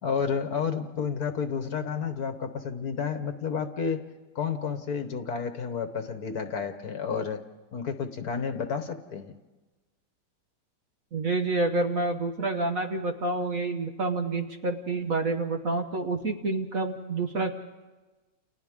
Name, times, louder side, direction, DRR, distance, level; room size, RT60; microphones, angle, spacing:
voice 1, 0.0-4.0 4.3-7.4 7.7-9.3, left 6 dB, 55° left, 7 dB, 1.5 m, -31 dB
voice 2, 11.1-17.5, right 2 dB, 50° right, 4 dB, 1.4 m, -28 dB
30.0 x 28.5 x 3.7 m, 1.2 s
omnidirectional pair, 2.2 m